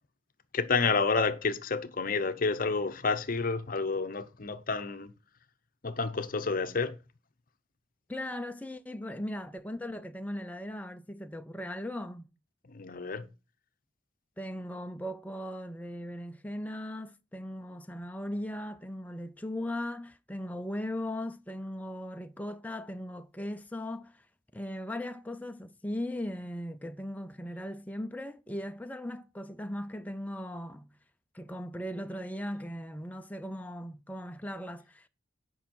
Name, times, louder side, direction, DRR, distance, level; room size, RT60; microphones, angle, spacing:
voice 1, 0.5-5.1 5.8-7.0 12.7-13.3, left 4 dB, 45° left, 0.7 m, -29 dB
voice 2, 8.1-12.3 14.4-24.3 24.5-30.9 31.3-35.1, left 1 dB, 10° left, 0.4 m, -38 dB
8.7 x 5.5 x 4.3 m
head